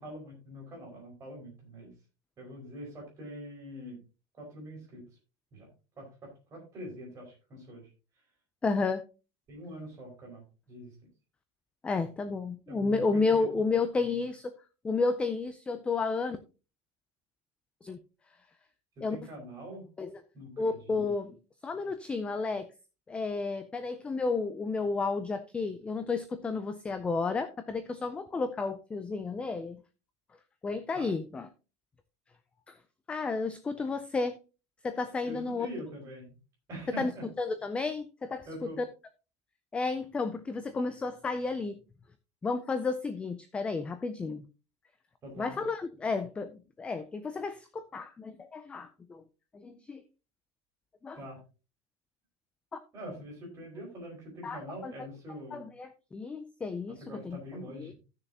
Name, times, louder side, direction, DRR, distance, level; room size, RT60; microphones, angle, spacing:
voice 1, 0.0-1.9 2.4-4.0 4.4-5.0 5.5-5.7 6.0-7.9 9.5-10.9 12.7-13.7 14.0-14.2 19.0-19.9 20.3-21.0 30.9-31.1 35.2-36.3 36.7-37.2 38.5-38.8 45.2-45.6 51.1-51.4 52.9-55.6 57.0-57.9, equal, 20° right, -1 dB, 4.7 m, -44 dB
voice 2, 8.6-9.0 11.8-14.5 14.8-16.4 17.8-18.0 19.0-19.2 20.0-20.2 20.6-21.4 21.6-22.7 23.1-29.8 30.6-31.5 32.7-32.8 33.1-34.4 34.8-35.7 37.0-37.1 37.4-38.5 39.7-41.8 42.4-44.5 45.4-46.5 46.8-49.2 49.5-50.0 51.0-51.2 54.4-54.9 55.5-57.4 57.8-57.9, left 4 dB, 10° left, 10 dB, 0.4 m, -32 dB
15.5 x 6.6 x 2.8 m, 0.32 s
supercardioid pair, 175°, 15 cm